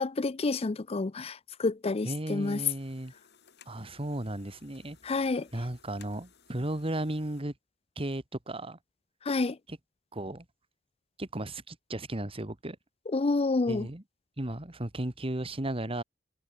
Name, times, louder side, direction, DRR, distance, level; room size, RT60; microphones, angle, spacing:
voice 1, 0.0-2.6 5.0-5.5 9.3-9.6 13.1-13.9, left 3 dB, 30° left, 0.5 m, -29 dB
voice 2, 2.0-3.1 3.7-5.0 5.5-7.5 7.9-8.8 9.7-9.8 10.1-10.4 11.2-12.8 13.7-14.0 14.4-16.0, right 1 dB, 30° right, 1.7 m, -35 dB
sound 1, 2.4-7.4, left 7 dB, 60° left, 4.7 m, -60 dB
head